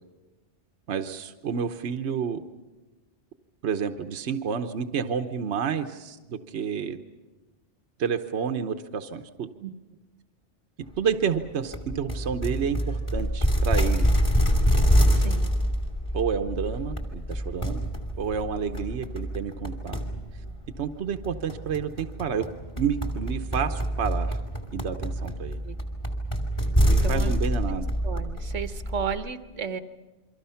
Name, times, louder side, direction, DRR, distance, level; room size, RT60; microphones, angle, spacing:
voice 1, 0.9-2.4 3.6-7.0 8.0-9.5 11.0-14.2 16.1-17.9 18.2-20.0 20.8-22.5 22.8-24.4 24.7-25.6 26.8-27.9, right 7 dB, 65° right, 7 dB, 1.2 m, -30 dB
sound 1, 11.7-29.1, equal, 25° left, 2.5 m, -26 dB
voice 2, 15.1-15.5 25.6-25.8 27.0-27.3 28.0-29.8, right 7 dB, 85° right, 9 dB, 1.4 m, -33 dB
28.5 x 24.0 x 5.7 m, 1.2 s
omnidirectional pair, 1.2 m